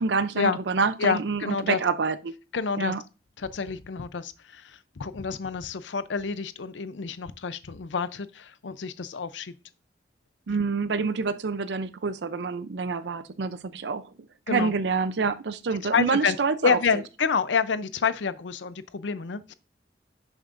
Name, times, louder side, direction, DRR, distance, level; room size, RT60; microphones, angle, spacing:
voice 1, 0.0-2.3 2.8-3.0 10.5-14.1 14.5-16.8, right 4 dB, 75° right, 0.5 m, -27 dB
voice 2, 1.0-1.8 2.5-2.9 3.4-9.5 14.5-14.7 15.9-16.4 16.6-19.5, left 5 dB, 90° left, 0.6 m, -28 dB
10.5 x 7.2 x 2.5 m
head